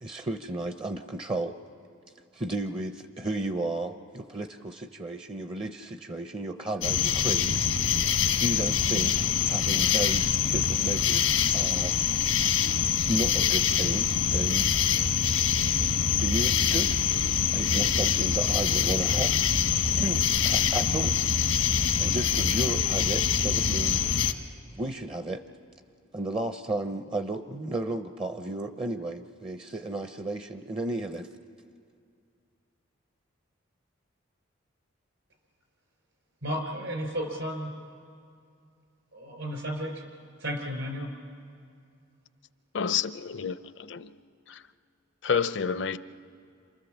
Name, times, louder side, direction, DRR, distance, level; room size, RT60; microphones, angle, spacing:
voice 1, 0.0-1.5 2.4-7.6 8.3-11.9 13.1-14.7 16.2-16.9 17.5-19.4 20.0-21.1 22.0-24.0 24.8-25.4 26.1-31.3, right 2 dB, 25° right, 8 dB, 0.6 m, -33 dB
sound 1, 6.8-24.3, left 8 dB, 90° left, 1.2 m, -25 dB
voice 2, 36.4-37.7 39.1-40.0 40.4-41.1, equal, 70° right, 4 dB, 4.2 m, -33 dB
voice 3, 42.7-44.2 44.5-44.6 45.2-46.0, left 7 dB, 60° left, 14 dB, 0.6 m, -29 dB
27.5 x 27.0 x 7.3 m, 2.4 s
head